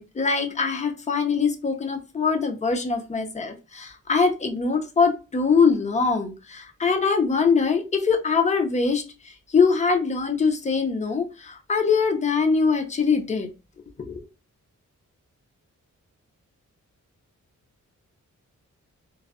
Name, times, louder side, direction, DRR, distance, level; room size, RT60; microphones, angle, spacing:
voice 1, 0.0-9.0 9.5-13.5 14.0-14.2, left 5 dB, 25° left, 0.4 m, -23 dB
2.5 x 2.1 x 2.4 m
wide cardioid pair, 150°, 31 cm